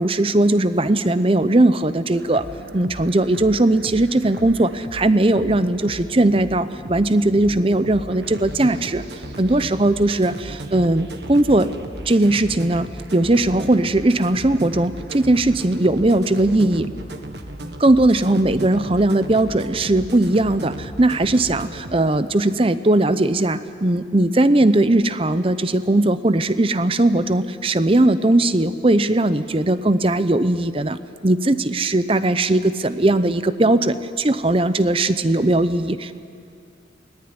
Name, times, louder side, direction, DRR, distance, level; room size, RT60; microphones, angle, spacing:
voice 1, 0.0-2.5 2.7-9.0 9.4-11.7 12.1-16.9 17.8-36.1, right 2 dB, 30° right, 13 dB, 0.7 m, -19 dB
sound 1, 2.1-22.0, right 1 dB, 65° right, 1.7 m, -36 dB
24.0 x 19.0 x 9.7 m, 2.4 s
head